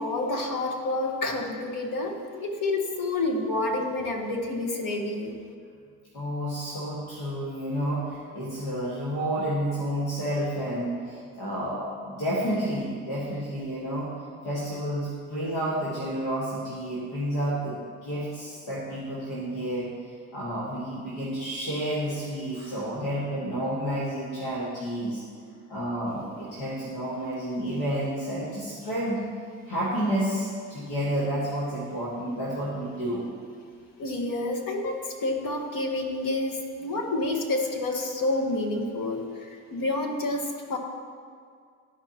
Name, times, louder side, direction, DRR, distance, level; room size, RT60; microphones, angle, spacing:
voice 1, 0.0-5.3 34.0-40.8, left 2 dB, 60° left, 1 dB, 1.5 m, -29 dB
voice 2, 6.1-14.1 14.4-19.9 20.3-25.2 25.7-29.2 29.7-33.3, right 1 dB, 80° left, -7 dB, 1.8 m, -30 dB
13.0 x 4.9 x 2.9 m, 2.1 s
supercardioid pair, 55°, 38 cm